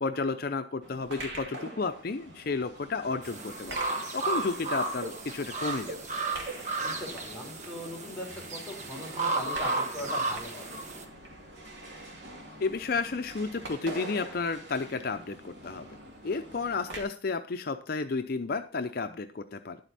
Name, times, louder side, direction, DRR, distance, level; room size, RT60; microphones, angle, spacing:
voice 1, 0.0-6.1 12.6-16.0 16.2-19.8, left 4 dB, 55° left, 8 dB, 0.6 m, -32 dB
sound 1, 0.8-17.0, right 1 dB, 75° right, 2.5 m, -45 dB
sound 2, 3.2-11.0, right 3 dB, 45° right, 1.5 m, -33 dB
voice 2, 6.8-10.8, left 1 dB, ahead, -2 dB, 4.1 m, -40 dB
11.0 x 7.9 x 4.1 m, 0.37 s
head